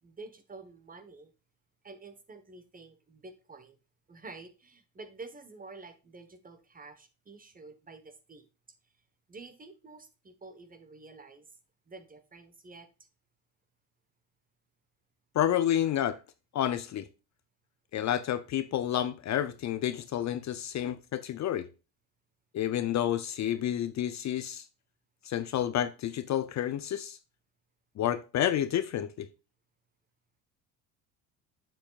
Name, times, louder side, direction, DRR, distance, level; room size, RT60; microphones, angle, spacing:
voice 1, 0.0-1.3 1.8-3.8 4.1-8.4 9.3-11.5 11.9-12.9, right 3 dB, 20° right, 1.3 m, -49 dB
voice 2, 15.3-16.2 16.5-17.1 17.9-21.7 22.5-24.6 25.2-27.2 28.0-29.3, left 11 dB, 40° left, 0.6 m, -30 dB
7.5 x 7.1 x 2.4 m
supercardioid pair, 90°, 42 cm